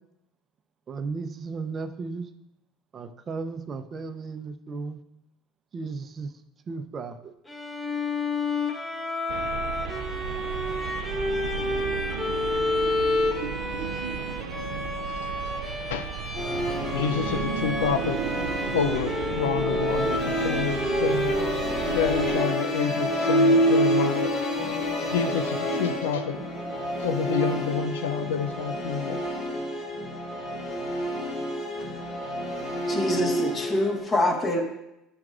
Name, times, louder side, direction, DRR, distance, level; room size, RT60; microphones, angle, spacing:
voice 1, 0.9-2.3 2.9-5.0 5.7-6.3 6.7-7.3, right 4 dB, 35° right, 8 dB, 0.6 m, -35 dB
Bowed string instrument, 7.5-25.3, left 2 dB, 15° left, 1.1 m, -31 dB
sound 1, 9.3-22.3, right 8 dB, 75° right, 0.3 m, -34 dB
Musical instrument, 16.3-34.0, equal, 55° left, 2.3 m, -28 dB
voice 2, 16.9-18.2 18.7-21.5 21.9-24.3 25.1-26.4 27.0-29.2, left 7 dB, 85° left, 10 dB, 0.4 m, -28 dB
voice 3, 32.9-34.6, left 1 dB, 30° left, 1 dB, 1.5 m, -25 dB
10.5 x 5.9 x 2.5 m, 0.88 s
hypercardioid pair, 75°, 0 cm